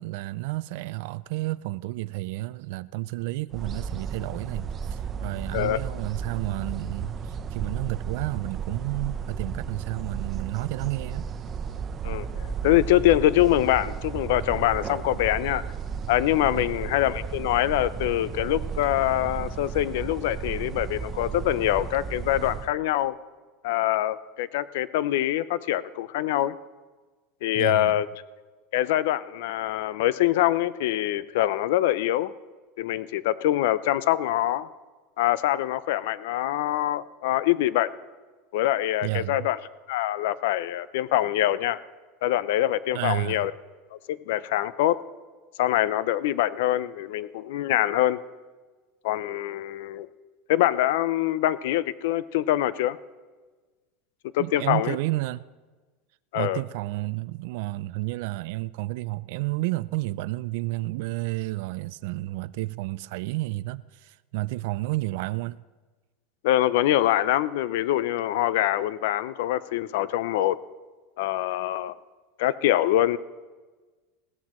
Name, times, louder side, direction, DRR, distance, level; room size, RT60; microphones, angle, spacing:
voice 1, 0.0-11.2 16.5-16.7 27.5-28.0 39.0-39.5 42.9-43.5 54.4-55.4 56.3-65.6, right 19 dB, 70° right, 0.3 m, -31 dB
sound 1, 3.5-22.7, right 6 dB, 25° right, 0.7 m, -34 dB
voice 2, 12.0-15.6 16.1-23.1 23.6-26.6 27.4-28.1 28.7-32.3 32.8-34.7 35.2-37.9 38.5-39.6 39.9-41.8 42.2-43.5 44.1-45.0 45.6-48.2 49.0-50.1 50.5-53.0 54.3-55.0 56.3-56.6 66.4-70.6 71.2-72.0 72.4-73.2, left 14 dB, 75° left, 0.6 m, -24 dB
20.5 x 16.5 x 3.1 m
supercardioid pair, 140°, 0 cm